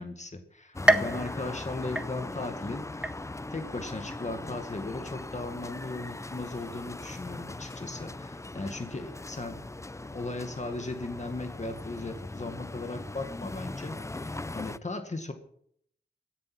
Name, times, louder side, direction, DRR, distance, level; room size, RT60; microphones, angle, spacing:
voice 1, 0.0-3.1 3.5-9.6 10.0-15.3, left 2 dB, 45° left, 6 dB, 1.8 m, -37 dB
sound 1, 0.7-14.8, left 2 dB, 15° left, 0.5 m, -40 dB
sound 2, 0.9-2.6 3.0-3.6 4.1-4.2 5.2-5.3, right 1 dB, 5° right, 1.5 m, -28 dB
17.0 x 10.5 x 6.0 m, 0.66 s
wide cardioid pair, 80°, 17 cm